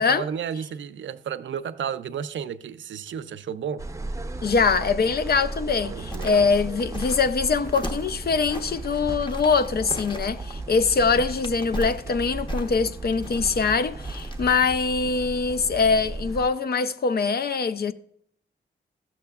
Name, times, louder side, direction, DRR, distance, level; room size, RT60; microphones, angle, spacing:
voice 1, 0.0-3.9 5.8-6.5, right 8 dB, 80° right, 0.4 m, -32 dB
sound 1, 3.8-16.5, right 2 dB, 15° right, 0.6 m, -35 dB
voice 2, 4.4-17.9, left 5 dB, 55° left, 0.5 m, -23 dB
sound 2, 5.9-14.7 15.1-15.2, equal, 25° left, 1.0 m, -37 dB
13.0 x 7.2 x 2.3 m
cardioid pair, 55°, 19 cm